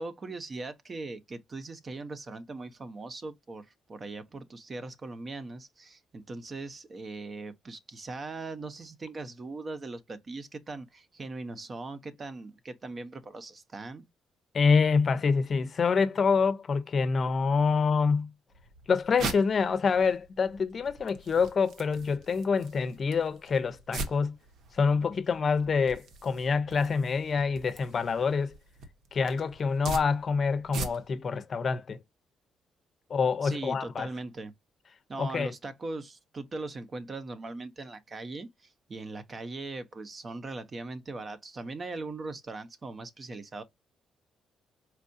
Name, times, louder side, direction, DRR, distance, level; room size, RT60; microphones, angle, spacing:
voice 1, 0.0-14.1 33.4-34.5 35.1-43.6, right 3 dB, 35° right, 0.8 m, -40 dB
voice 2, 14.5-18.3 18.9-24.4 24.7-28.6 29.1-32.0 33.1-34.1 35.2-35.5, left 5 dB, 45° left, 0.6 m, -26 dB
sound 1, 18.5-31.3, right 3 dB, 75° right, 1.0 m, -42 dB
4.5 x 2.3 x 2.6 m
cardioid pair, 90°, 0 cm